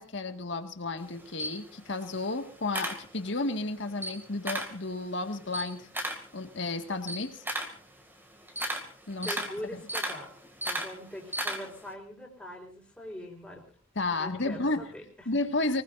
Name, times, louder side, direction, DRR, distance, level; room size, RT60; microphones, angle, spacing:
voice 1, 0.0-5.9 6.3-7.4 9.1-9.4 9.7-9.8 14.0-14.9 15.3-15.8, left 2 dB, 60° left, 7 dB, 1.9 m, -32 dB
Camera, 1.0-3.6 3.9-4.8 5.2-11.9, right 1 dB, 10° right, 2.4 m, -36 dB
voice 2, 9.2-13.6 14.2-15.3, left 1 dB, 5° left, -1 dB, 4.3 m, -43 dB
24.0 x 20.0 x 2.7 m, 0.37 s
head